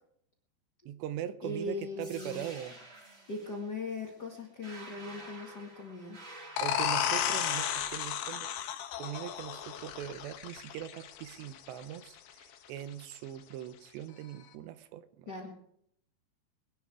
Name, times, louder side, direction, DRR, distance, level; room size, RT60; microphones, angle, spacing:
voice 1, 0.9-2.8 6.6-8.5 9.0-15.3, right 11 dB, 80° right, 13 dB, 3.0 m, -41 dB
voice 2, 1.4-2.4 3.3-6.2 15.3-15.6, left 2 dB, 50° left, 1 dB, 1.2 m, -39 dB
sound 1, 2.0-8.0, right 2 dB, 35° right, 5.4 m, -50 dB
sound 2, 6.6-12.0, left 9 dB, 80° left, 3.4 m, -33 dB
22.0 x 11.0 x 4.8 m, 0.70 s
omnidirectional pair, 5.1 m